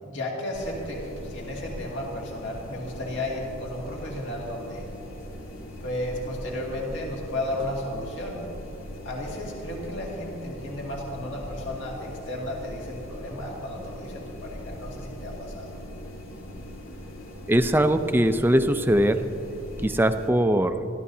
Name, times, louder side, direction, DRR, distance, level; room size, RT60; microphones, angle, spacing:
voice 1, 0.0-4.9 5.8-8.4 9.0-15.7, left 1 dB, 65° left, -2 dB, 2.1 m, -34 dB
sound 1, 0.5-20.3, equal, 80° left, 1.9 m, -40 dB
voice 2, 17.5-19.2 19.8-20.7, right 1 dB, 10° right, 9 dB, 0.5 m, -21 dB
27.0 x 12.5 x 2.8 m, 2.9 s
head